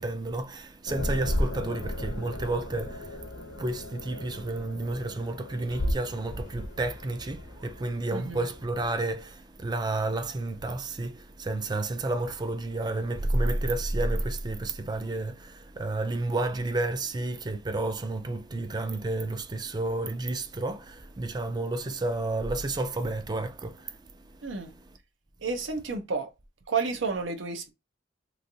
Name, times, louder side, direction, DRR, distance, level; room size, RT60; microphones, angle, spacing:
voice 1, 0.0-25.0, right 2 dB, 20° right, 0.4 m, -31 dB
sound 1, 0.9-8.9, left 1 dB, 80° left, 0.9 m, -35 dB
voice 2, 25.4-26.3 26.7-27.7, right 4 dB, 85° right, 0.8 m, -30 dB
3.1 x 2.5 x 2.7 m
head